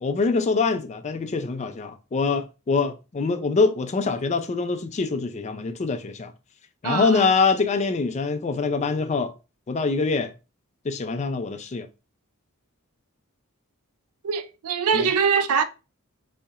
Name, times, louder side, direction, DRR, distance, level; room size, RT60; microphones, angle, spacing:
voice 1, 0.0-6.3 6.8-9.3 9.7-10.3 10.8-11.9 14.9-15.1, left 4 dB, 30° left, 0.4 m, -24 dB
voice 2, 6.8-7.3 14.2-15.6, right 6 dB, 80° right, 0.4 m, -23 dB
4.2 x 2.8 x 2.4 m
head